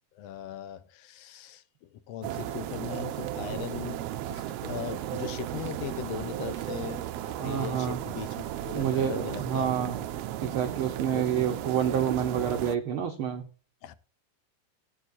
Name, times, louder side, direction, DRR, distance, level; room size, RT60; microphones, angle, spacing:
voice 1, 0.1-9.8 11.1-11.6 13.8-13.9, left 11 dB, 70° left, 1.7 m, -39 dB
sound 1, 2.2-12.8, right 12 dB, 80° right, 1.5 m, -35 dB
voice 2, 7.4-8.0 8.7-10.0 10.4-13.5, right 9 dB, 60° right, 1.6 m, -28 dB
17.5 x 8.4 x 2.7 m
omnidirectional pair, 3.4 m